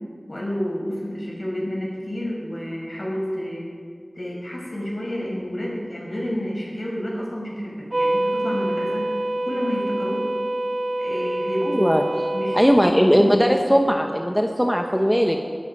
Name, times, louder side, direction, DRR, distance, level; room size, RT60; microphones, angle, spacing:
voice 1, 0.3-3.6 4.1-9.1 9.5-10.3 11.0-12.0 12.3-13.3, equal, 45° left, -3 dB, 5.6 m, -29 dB
sound 1, 7.9-12.8, right 1 dB, 45° right, 1.0 m, -25 dB
voice 2, 11.7-12.0 12.5-15.4, equal, ahead, 3 dB, 1.0 m, -18 dB
22.5 x 11.5 x 5.4 m, 2.1 s
wide cardioid pair, 45°, 0 cm